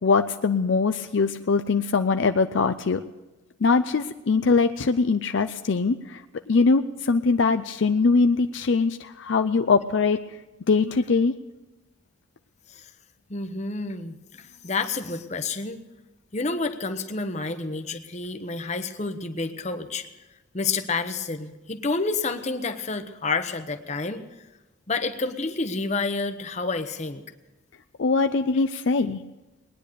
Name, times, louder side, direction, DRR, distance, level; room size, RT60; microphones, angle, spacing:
voice 1, 0.0-3.0 3.6-6.2 6.5-10.2 10.7-11.3 28.0-29.2, left 4 dB, 65° left, 8 dB, 0.5 m, -22 dB
voice 2, 13.3-15.8 16.3-20.1 20.5-24.2 24.9-27.2, left 3 dB, 35° left, 8 dB, 0.9 m, -29 dB
20.5 x 10.0 x 6.7 m, 1.1 s
head